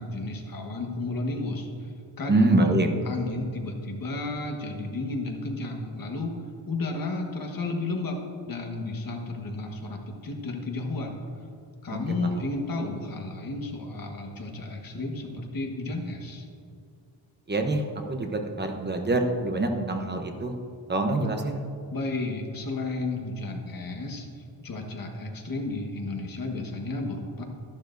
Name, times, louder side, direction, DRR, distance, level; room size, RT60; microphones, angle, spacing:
voice 1, 0.0-2.8 3.0-6.3 6.7-8.2 8.5-11.2 11.8-16.5 21.9-27.4, left 2 dB, 50° left, 1 dB, 1.5 m, -32 dB
voice 2, 2.3-2.9 11.9-12.0 17.5-20.5 20.9-21.7, right 2 dB, 25° right, 4 dB, 0.9 m, -25 dB
12.5 x 11.5 x 2.6 m, 2.5 s
wide cardioid pair, 145°, 44 cm